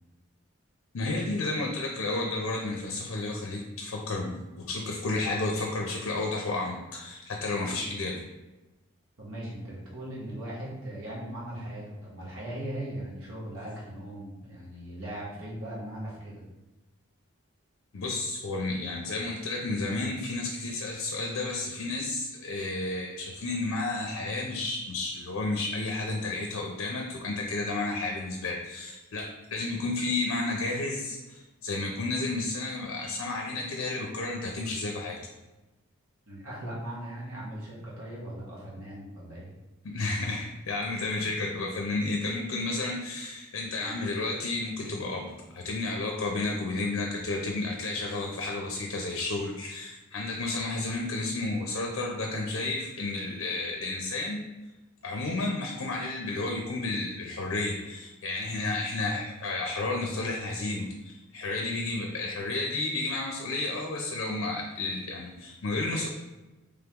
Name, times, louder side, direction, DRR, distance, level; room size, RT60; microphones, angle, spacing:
voice 1, 0.9-8.2 17.9-35.2 39.8-54.5 55.0-66.1, left 2 dB, 70° left, 1 dB, 0.5 m, -32 dB
voice 2, 9.2-16.4 36.3-39.5, right 1 dB, 80° right, -6 dB, 1.1 m, -39 dB
3.5 x 2.9 x 3.5 m, 1.1 s
head